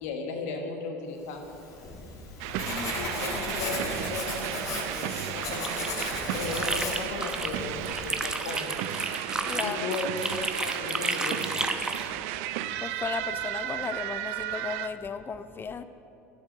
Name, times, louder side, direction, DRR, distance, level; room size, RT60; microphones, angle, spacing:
voice 1, 0.0-1.6 3.0-6.0 6.3-8.8 9.6-10.3 10.6-11.5, left 3 dB, 65° left, 3 dB, 1.3 m, -36 dB
Writing, 1.4-8.2, left 3 dB, 40° left, 2.5 m, -36 dB
sound 1, 2.4-14.9, right 13 dB, 60° right, 0.4 m, -34 dB
sound 2, 5.4-7.6 7.9-12.1, right 2 dB, 10° right, 0.8 m, -32 dB
voice 2, 9.5-9.9 12.8-15.8, left 5 dB, 25° left, 12 dB, 0.5 m, -35 dB
12.0 x 7.1 x 6.4 m, 2.8 s
hypercardioid pair, 75°, 8 cm